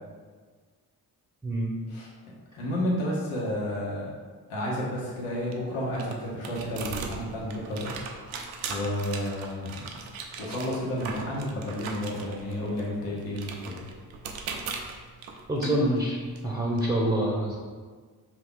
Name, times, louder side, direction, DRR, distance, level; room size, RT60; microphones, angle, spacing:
voice 1, 2.5-4.1 4.5-7.9 8.7-9.9 10.4-13.8, left 1 dB, 80° left, -4 dB, 1.1 m, -31 dB
sound 1, 5.1-16.8, right 5 dB, 70° right, 0.7 m, -40 dB
voice 2, 15.5-16.2 16.4-17.6, right 1 dB, 5° right, -3 dB, 0.8 m, -26 dB
4.7 x 2.4 x 3.7 m, 1.5 s
hypercardioid pair, 40°, 50 cm